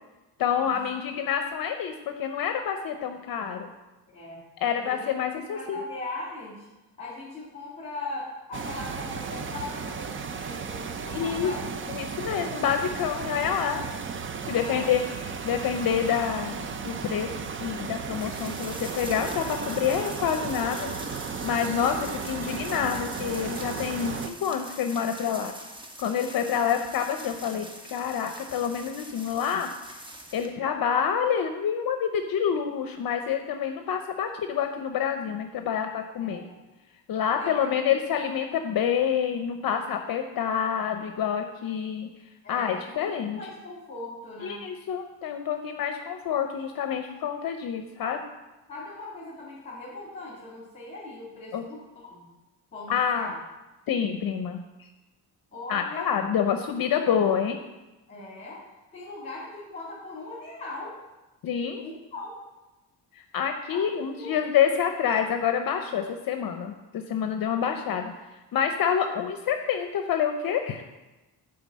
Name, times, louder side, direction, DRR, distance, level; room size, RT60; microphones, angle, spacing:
voice 1, 0.4-3.7 4.6-5.8 11.1-11.5 11.9-13.8 14.5-17.3 17.6-20.9 21.4-25.6 26.0-29.7 30.3-36.5 37.1-42.1 42.5-43.4 44.4-48.2 51.5-51.6 52.9-53.3 53.9-54.6 55.7-57.6 61.4-61.8 63.3-68.1 68.5-70.8, left 8 dB, 60° left, 6 dB, 0.7 m, -27 dB
voice 2, 4.1-4.4 4.8-6.7 7.0-11.7 14.6-14.9 21.8-22.1 26.5-26.7 36.2-36.6 37.4-38.0 42.4-44.6 48.7-52.3 52.7-53.4 55.5-56.2 58.1-58.6 58.9-61.0 61.8-62.4 63.7-64.3, left 2 dB, 20° left, -6 dB, 2.2 m, -40 dB
sound 1, 8.5-24.3, right 5 dB, 30° right, 0.5 m, -35 dB
sound 2, 18.1-30.5, right 1 dB, 10° right, 0.8 m, -43 dB
9.0 x 4.7 x 7.3 m, 1.1 s
cardioid pair, 145°, 41 cm